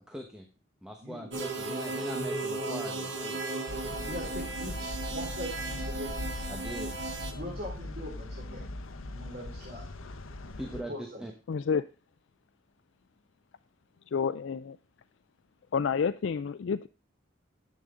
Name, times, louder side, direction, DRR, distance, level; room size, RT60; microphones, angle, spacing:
voice 1, 0.1-0.5 0.8-3.4 6.5-6.9 10.6-11.3, equal, 5° right, 1.1 m, -41 dB
voice 2, 1.0-1.4 4.0-6.2 7.3-8.6 9.1-9.9 10.7-11.3, equal, 50° right, 4.2 m, -41 dB
sound 1, 1.3-7.3, right 3 dB, 70° right, 2.1 m, -35 dB
sound 2, 3.7-10.8, left 2 dB, 90° left, 0.9 m, -40 dB
voice 3, 11.5-11.9 14.1-14.8 15.7-16.9, left 6 dB, 65° left, 0.4 m, -29 dB
10.5 x 8.7 x 3.7 m
head